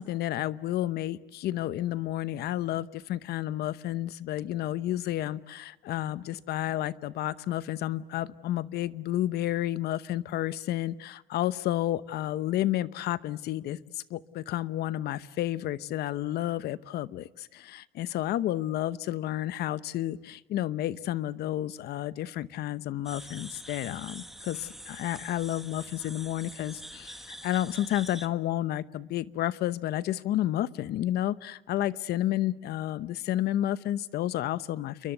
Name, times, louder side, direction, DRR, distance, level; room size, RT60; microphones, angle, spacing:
voice 1, 0.0-35.1, left 13 dB, 70° left, 16 dB, 1.0 m, -31 dB
sound 1, 23.0-28.3, equal, ahead, 1.6 m, -45 dB
29.0 x 23.0 x 8.0 m, 1.1 s
cardioid pair, 110°, 17 cm